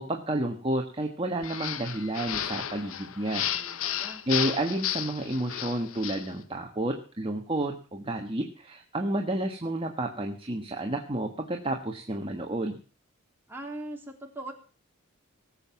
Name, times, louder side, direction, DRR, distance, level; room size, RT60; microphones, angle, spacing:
voice 1, 0.0-3.5 4.3-12.8, right 1 dB, 25° right, 2 dB, 1.4 m, -30 dB
sound 1, 1.4-6.3, left 10 dB, 85° left, 0.8 m, -33 dB
voice 2, 3.2-4.2 13.5-14.5, right 1 dB, 10° right, 0 dB, 3.1 m, -41 dB
18.5 x 7.7 x 7.1 m, 0.38 s
head